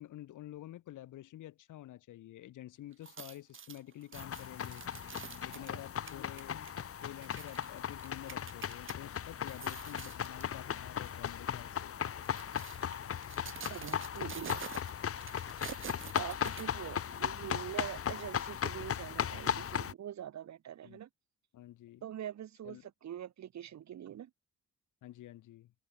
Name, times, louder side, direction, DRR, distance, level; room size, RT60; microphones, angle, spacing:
voice 1, 0.0-4.9 5.4-12.0 20.8-21.0 21.5-22.0 22.6-22.9 25.0-25.7, left 14 dB, 80° left, 5.4 m, -49 dB
sound 1, 2.9-9.0 9.4-10.5 11.0-11.2 12.0-17.1 17.5-17.6, right 7 dB, 40° right, 2.2 m, -48 dB
sound 2, 4.1-19.9, left 8 dB, 50° left, 1.6 m, -37 dB
voice 2, 5.5-5.8 13.7-14.6 16.1-21.1 22.0-24.3, right 10 dB, 65° right, 3.3 m, -44 dB
cardioid pair, 90°, 30 cm